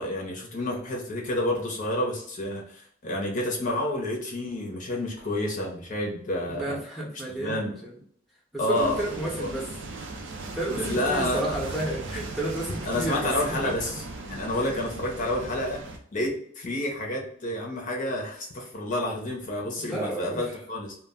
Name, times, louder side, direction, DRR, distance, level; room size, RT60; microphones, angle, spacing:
voice 1, 0.0-6.8 7.4-7.7 8.6-9.5 10.7-11.4 12.9-14.0 14.3-15.8 16.1-21.0, left 1 dB, 40° left, -1 dB, 0.6 m, -29 dB
voice 2, 6.5-7.9 8.5-9.7 10.5-13.3 13.6-13.7 14.5-14.7 19.8-20.4, right 1 dB, ahead, -3 dB, 0.7 m, -31 dB
sound 1, 8.7-16.0, right 2 dB, 65° right, 0.5 m, -38 dB
2.2 x 2.1 x 3.5 m, 0.63 s
head